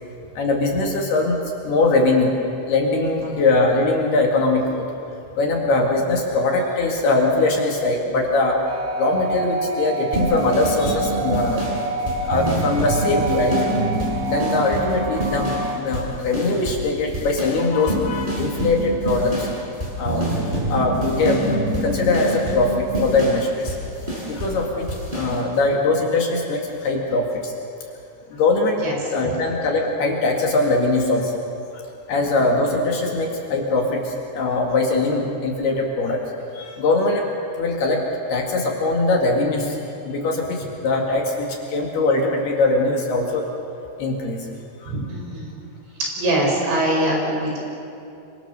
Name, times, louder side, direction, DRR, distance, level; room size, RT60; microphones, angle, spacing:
voice 1, 0.4-1.4 1.6-2.3 2.7-4.9 5.4-8.6 9.0-11.6 12.0-13.6 14.3-19.5 20.0-20.3 20.7-21.6 21.8-23.8 24.3-24.9 25.1-27.5 28.3-28.8 29.1-31.3 31.7-36.2 36.5-37.3 37.6-38.0 38.3-43.5 44.0-44.5 44.8-44.9, left 2 dB, 60° left, 0 dB, 3.6 m, -21 dB
sound 1, 8.6-15.8, right 3 dB, 80° right, 1.5 m, -28 dB
sound 2, 10.1-15.7 15.9-16.9 17.1-24.6 24.9-25.3, right 1 dB, 10° right, 7.4 m, -26 dB
voice 2, 44.9-45.6 46.2-47.6, right 1 dB, 60° right, -1 dB, 7.3 m, -23 dB
27.5 x 24.5 x 6.8 m, 2.7 s
omnidirectional pair, 5.9 m